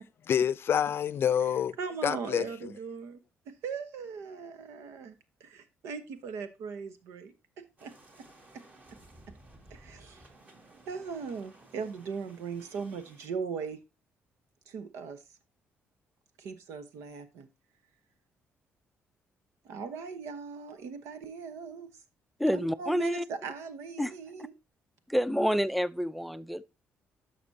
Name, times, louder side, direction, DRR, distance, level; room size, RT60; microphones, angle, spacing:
voice 1, 0.3-1.7 2.0-2.7, left 8 dB, 55° left, 0.5 m, -27 dB
voice 2, 1.8-3.2 3.5-5.1 5.4-8.3 8.5-8.6 9.7-10.3 10.9-13.8 14.7-15.2 16.4-17.5 19.6-21.9 22.5-24.5, right 5 dB, 90° right, 1.1 m, -39 dB
sound 1, 7.8-13.3, right 2 dB, 35° right, 2.0 m, -56 dB
voice 3, 22.4-23.2 24.0-24.1 25.1-26.6, equal, ahead, 0.4 m, -28 dB
11.0 x 6.0 x 2.7 m
cardioid pair, 95°, 5 cm